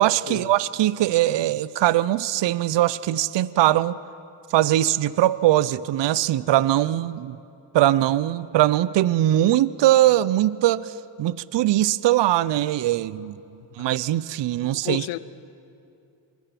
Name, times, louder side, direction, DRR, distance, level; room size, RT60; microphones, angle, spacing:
voice 1, 0.0-4.0 4.5-7.4 7.7-13.4 13.8-15.0, right 14 dB, 60° right, 0.7 m, -21 dB
voice 2, 14.7-15.2, left 18 dB, 85° left, 0.7 m, -32 dB
24.5 x 21.0 x 6.0 m
supercardioid pair, 55°, 50 cm